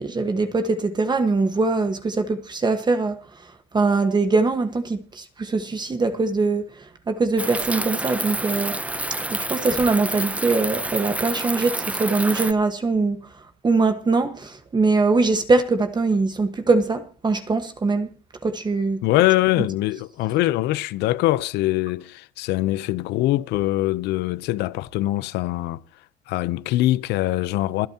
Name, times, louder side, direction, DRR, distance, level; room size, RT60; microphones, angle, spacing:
voice 1, 0.0-3.5 3.7-8.8 9.3-13.2 13.6-18.1 18.4-19.2 19.6-19.7, right 3 dB, 25° right, 1.4 m, -22 dB
sound 1, 7.4-12.5, right 2 dB, 10° right, 0.6 m, -28 dB
voice 2, 19.0-25.8 26.3-27.9, left 16 dB, 85° left, 0.7 m, -23 dB
27.0 x 9.1 x 2.9 m
cardioid pair, 110°, 17 cm